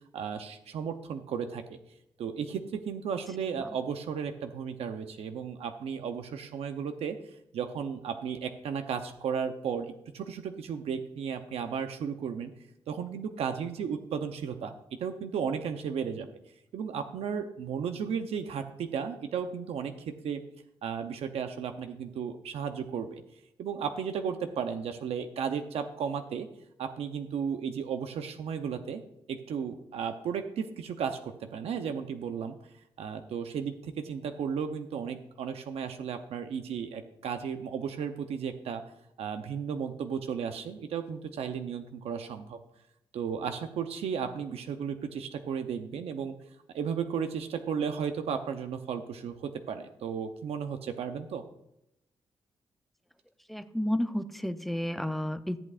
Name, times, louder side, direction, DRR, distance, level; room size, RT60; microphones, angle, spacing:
voice 1, 0.1-1.8 2.2-7.2 7.5-12.5 12.9-14.7 15.0-16.3 16.7-20.4 20.8-23.2 23.6-26.5 26.8-29.0 29.3-32.6 33.0-38.8 39.2-42.6 43.1-46.4 46.7-51.4, right 7 dB, 85° right, 7 dB, 0.7 m, -34 dB
voice 2, 53.5-55.6, equal, ahead, 10 dB, 0.4 m, -31 dB
13.5 x 8.4 x 2.5 m, 0.82 s
wide cardioid pair, 170°, 10 cm